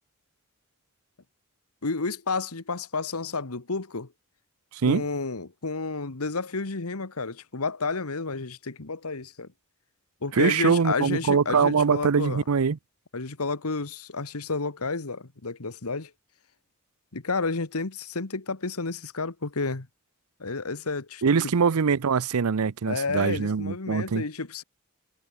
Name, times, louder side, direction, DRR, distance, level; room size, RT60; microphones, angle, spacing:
voice 1, 1.8-4.1 4.8-9.5 10.2-12.4 13.1-16.1 17.1-19.9 20.4-21.2 22.9-24.6, left 3 dB, 85° left, 1.5 m, -31 dB
voice 2, 10.3-12.8 21.2-24.2, right 5 dB, 85° right, 0.6 m, -23 dB
head